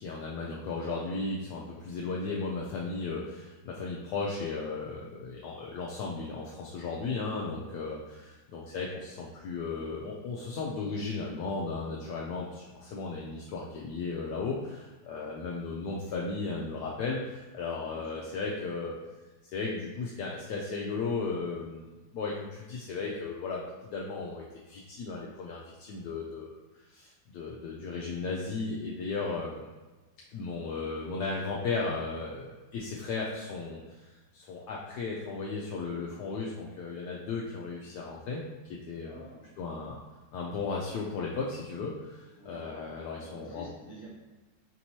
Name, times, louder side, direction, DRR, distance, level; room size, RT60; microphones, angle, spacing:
voice 1, 0.0-18.9 19.5-21.9 22.1-26.6 26.9-29.6 30.3-39.2 39.6-40.0 40.3-43.7, left 4 dB, 75° left, -3 dB, 1.0 m, -35 dB
voice 2, 17.9-18.2 39.0-39.5 42.4-42.6 43.2-44.1, equal, 35° left, -5 dB, 1.4 m, -49 dB
5.2 x 2.9 x 2.7 m, 1.2 s
omnidirectional pair, 2.2 m